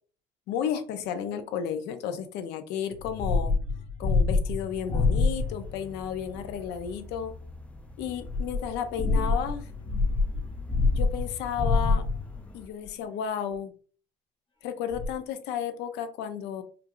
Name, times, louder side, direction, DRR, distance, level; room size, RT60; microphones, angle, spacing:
voice 1, 0.5-3.5 4.0-7.3 8.0-9.7 10.9-12.1 12.5-13.7 14.6-16.6, left 8 dB, 90° left, 9 dB, 0.6 m, -33 dB
sound 1, 2.9-5.7 8.2-12.4 13.0-13.1 14.9-15.1, left 3 dB, 30° left, 0.8 m, -26 dB
sound 2, 4.7-12.7, left 1 dB, 5° left, 0.3 m, -46 dB
4.4 x 2.4 x 2.4 m, 0.42 s
cardioid pair, 110°, 17 cm